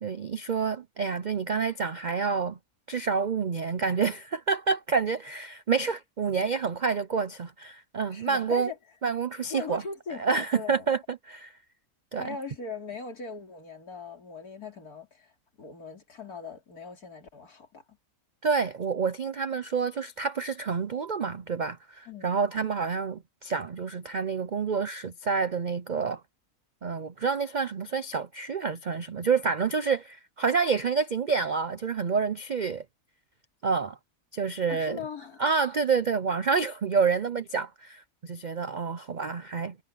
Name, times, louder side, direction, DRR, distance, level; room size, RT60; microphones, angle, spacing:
voice 1, 0.0-2.6 2.9-8.7 9.0-9.8 10.1-11.5 12.1-12.3 18.4-26.2 26.8-32.8 33.6-34.0 34.3-35.0 35.4-39.8, right 5 dB, 65° right, 0.4 m, -28 dB
voice 2, 8.1-8.8 9.5-10.9 12.1-15.3 15.6-18.0 22.1-22.4 34.7-35.4, left 4 dB, 75° left, 3.7 m, -40 dB
omnidirectional pair, 1.6 m